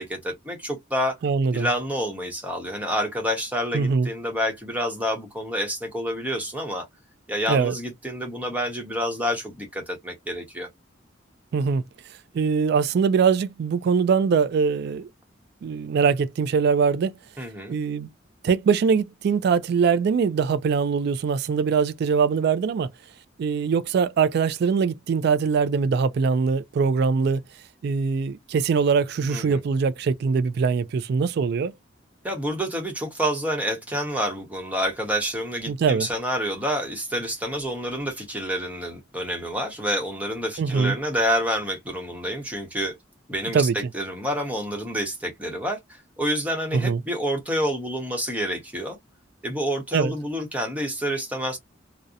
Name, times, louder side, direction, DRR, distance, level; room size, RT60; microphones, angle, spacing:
voice 1, 0.0-1.2 1.5-6.8 7.3-10.7 17.4-17.8 29.3-29.6 32.2-42.9 43.3-49.0 49.4-51.6, equal, 10° right, 0.8 m, -28 dB
voice 2, 1.2-1.7 3.7-4.1 7.5-7.8 11.5-11.8 12.3-15.1 15.6-17.1 17.7-18.1 18.4-22.9 23.4-27.4 27.8-31.7 35.7-36.1 40.6-41.0 43.5-43.7 46.7-47.0 49.9-50.1, right 5 dB, 60° right, 0.3 m, -22 dB
2.7 x 2.0 x 2.3 m
head